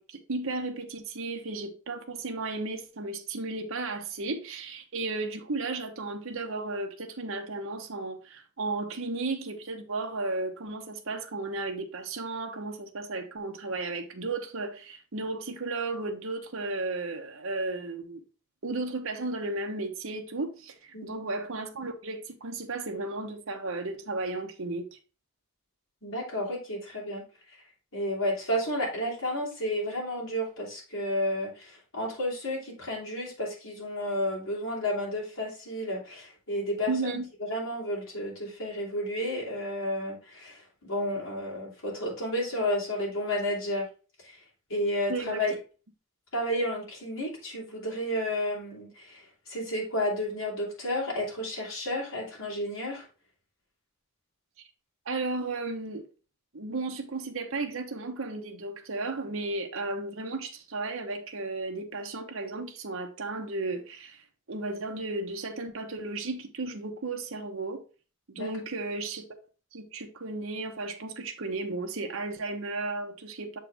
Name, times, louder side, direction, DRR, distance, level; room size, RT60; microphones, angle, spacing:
voice 1, 0.0-18.2 18.6-25.0 36.9-37.3 45.1-45.4 55.1-56.0 56.5-67.8 68.3-69.2 69.7-73.6, right 3 dB, 65° right, 1.0 m, -34 dB
voice 2, 26.0-27.2 27.9-37.2 37.5-40.6 40.9-43.8 44.2-44.4 44.7-45.5 46.3-53.1 68.3-68.5, left 1 dB, 60° left, 3.2 m, -31 dB
7.1 x 4.5 x 3.4 m
head